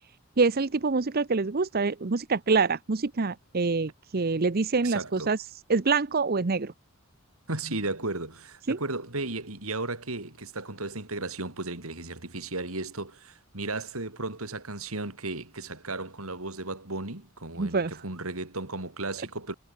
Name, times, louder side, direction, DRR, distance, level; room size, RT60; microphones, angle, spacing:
voice 1, 0.4-5.4 5.7-6.7 8.7-8.8 17.6-17.9, right 4 dB, 45° right, 0.7 m, -25 dB
voice 2, 4.7-5.3 7.5-19.5, right 2 dB, 80° right, 4.6 m, -35 dB
head